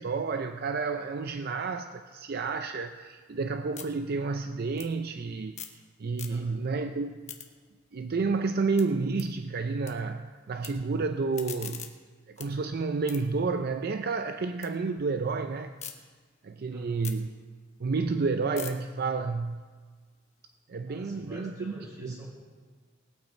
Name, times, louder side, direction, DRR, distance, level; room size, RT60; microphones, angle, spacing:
voice 1, 0.0-5.5 6.0-7.2 7.9-11.9 12.3-15.7 16.4-17.3 17.8-19.6 20.7-21.7 22.0-22.1, right 4 dB, 55° right, 8 dB, 0.5 m, -30 dB
sound 1, 2.9-5.8 6.1-6.7 7.0-9.9 10.2-10.7 11.1-14.7 15.1-15.9 16.4-20.5, left 9 dB, 40° left, 1.1 m, -46 dB
voice 2, 6.3-6.7 16.7-17.1 20.9-22.4, equal, 20° right, -4 dB, 4.7 m, -47 dB
19.5 x 8.8 x 4.4 m, 1.5 s
head